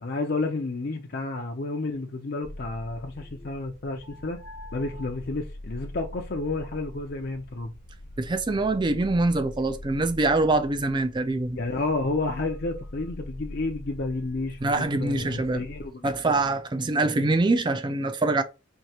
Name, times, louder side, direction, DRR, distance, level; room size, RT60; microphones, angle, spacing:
voice 1, 0.0-4.4 4.7-7.7 10.6-10.7 11.6-16.4, left 3 dB, 45° left, 0.5 m, -31 dB
sound 1, 2.4-15.9, left 1 dB, 80° left, 1.0 m, -42 dB
voice 2, 8.2-11.6 14.6-15.6 16.0-18.4, right 2 dB, 20° right, 0.4 m, -24 dB
4.5 x 2.8 x 2.8 m
head